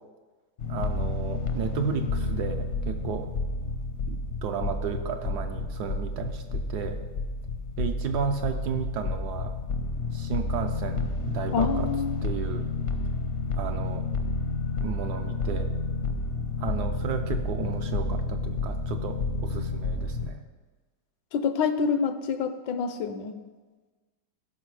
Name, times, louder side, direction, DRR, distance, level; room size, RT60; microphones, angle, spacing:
sound 1, 0.6-20.3, left 3 dB, 55° left, 0.8 m, -30 dB
voice 1, 0.7-3.3 4.1-7.0 7.8-9.5 10.1-11.9 12.2-12.7 13.5-14.0 14.8-15.7 16.6-20.4, right 7 dB, 70° right, 6 dB, 1.1 m, -33 dB
voice 2, 11.5-12.1 21.3-23.4, left 5 dB, 75° left, 10 dB, 1.3 m, -27 dB
13.5 x 5.8 x 4.8 m, 1.3 s
omnidirectional pair, 2.1 m